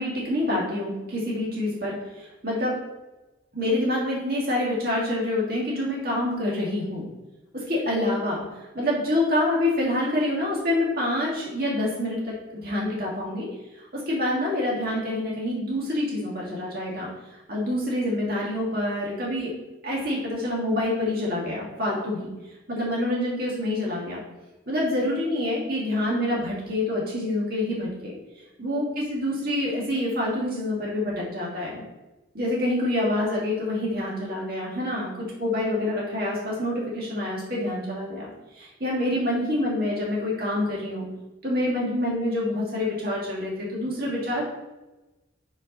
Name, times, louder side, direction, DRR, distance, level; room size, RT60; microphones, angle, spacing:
voice 1, 0.0-2.8 3.5-7.0 7.5-13.5 13.7-19.5 19.8-22.3 22.7-24.2 24.7-31.8 32.3-35.1 35.4-41.1 41.4-44.4, left 1 dB, 50° right, -4 dB, 1.9 m, -27 dB
5.7 x 4.7 x 5.3 m, 1.0 s
head